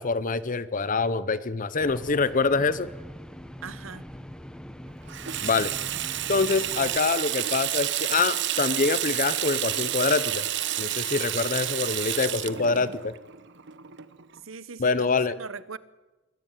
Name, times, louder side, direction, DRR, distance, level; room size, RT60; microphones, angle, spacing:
voice 1, 0.0-2.9 5.4-5.7 6.3-10.5 10.8-13.1 14.8-15.4, left 4 dB, 40° left, 16 dB, 0.8 m, -25 dB
sound 1, 1.8-7.0, equal, 5° left, 1.0 m, -42 dB
voice 2, 3.6-4.1 12.7-12.9 14.4-15.8, right 5 dB, 85° right, 17 dB, 1.1 m, -40 dB
Water tap faucet / Sink (filling or washing), 5.1-14.4, right 12 dB, 60° right, 1.1 m, -30 dB
22.5 x 16.0 x 9.1 m, 1.1 s
head